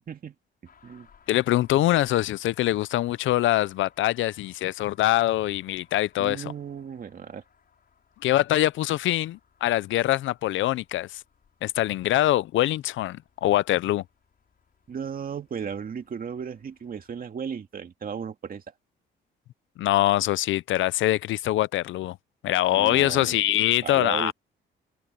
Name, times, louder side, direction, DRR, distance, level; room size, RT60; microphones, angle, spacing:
sound 1, 0.6-17.2, left 6 dB, 50° left, 6.2 m, -62 dB
voice 1, 1.3-6.4 8.2-11.2 11.6-14.0 19.8-22.2 22.4-24.3, left 15 dB, 75° left, 0.6 m, -24 dB
voice 2, 6.2-7.4 14.9-18.7 22.7-23.4 23.8-24.3, right 7 dB, 45° right, 2.5 m, -35 dB
open air
cardioid pair, 90°, 20 cm